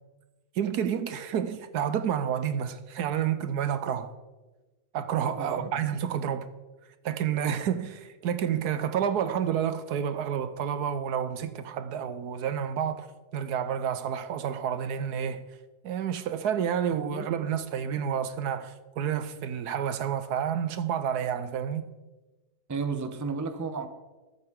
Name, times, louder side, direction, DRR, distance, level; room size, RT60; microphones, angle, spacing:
voice 1, 0.5-4.1 4.9-6.5 7.0-13.1 13.3-15.4 15.8-21.9, right 8 dB, 75° right, 1.3 m, -29 dB
voice 2, 5.4-5.8 17.0-17.3 22.7-23.9, right 4 dB, 15° right, 0.7 m, -33 dB
21.5 x 8.0 x 3.7 m
omnidirectional pair, 1.7 m